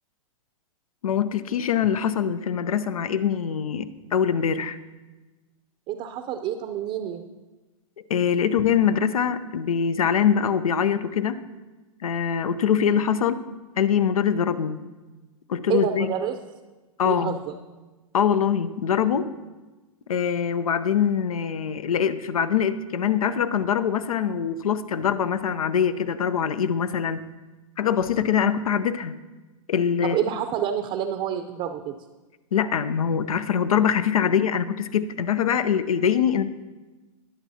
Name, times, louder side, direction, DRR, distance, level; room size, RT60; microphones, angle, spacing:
voice 1, 1.0-4.8 8.1-11.4 12.0-13.4 13.8-14.8 15.5-16.1 17.0-17.4 18.1-19.3 20.1-27.2 27.8-29.1 29.7-30.2 32.5-36.4, left 8 dB, 85° left, 12 dB, 0.6 m, -23 dB
voice 2, 5.9-7.2 15.7-16.3 17.1-17.5 30.0-31.9, right 9 dB, 35° right, 6 dB, 0.6 m, -28 dB
20.5 x 7.2 x 2.8 m, 1.2 s
hypercardioid pair, 120°, 18 cm